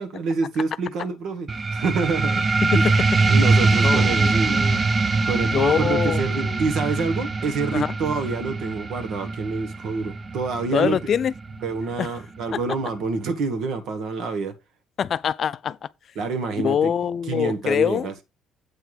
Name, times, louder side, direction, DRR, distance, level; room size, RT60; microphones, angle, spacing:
voice 1, 0.0-2.4 2.7-2.9 3.3-4.6 5.2-11.0 11.6-14.5 16.1-16.9 17.3-18.1, right 4 dB, 70° right, 1.3 m, -27 dB
sound 1, 1.5-12.5, right 3 dB, 30° right, 0.6 m, -23 dB
voice 2, 3.8-4.8 5.4-6.6 7.7-7.9 10.7-11.3 12.0-12.1 12.5-12.6 15.0-15.8 16.6-18.1, left 8 dB, 50° left, 0.4 m, -24 dB
8.2 x 3.4 x 6.2 m
cardioid pair, 100°, 0 cm